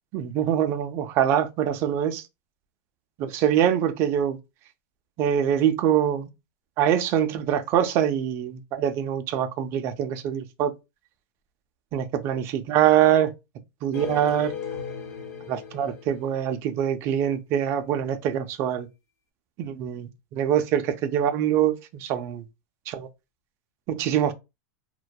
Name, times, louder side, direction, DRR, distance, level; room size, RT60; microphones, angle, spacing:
voice 1, 0.1-2.2 3.2-4.4 5.2-6.3 6.8-10.7 11.9-13.3 13.8-14.5 15.5-18.9 19.6-22.4 22.9-23.1 23.9-24.3, right 10 dB, 30° right, 0.3 m, -24 dB
sound 1, 13.9-17.0, left 7 dB, 80° left, 1.0 m, -37 dB
2.2 x 2.1 x 2.6 m
supercardioid pair, 165°, 8 cm